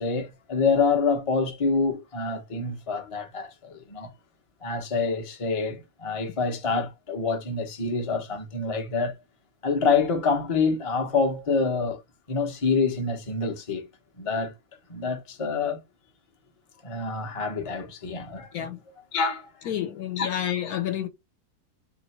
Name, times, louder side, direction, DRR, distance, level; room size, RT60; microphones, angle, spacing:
voice 1, 0.0-4.1 4.6-9.2 9.6-12.0 12.3-13.9 14.2-14.5 14.9-15.8 16.8-18.7 19.1-19.5 20.2-20.3, left 4 dB, 30° left, 0.6 m, -26 dB
voice 2, 19.6-21.1, left 10 dB, 70° left, 1.1 m, -29 dB
3.1 x 2.9 x 4.2 m
omnidirectional pair, 1.7 m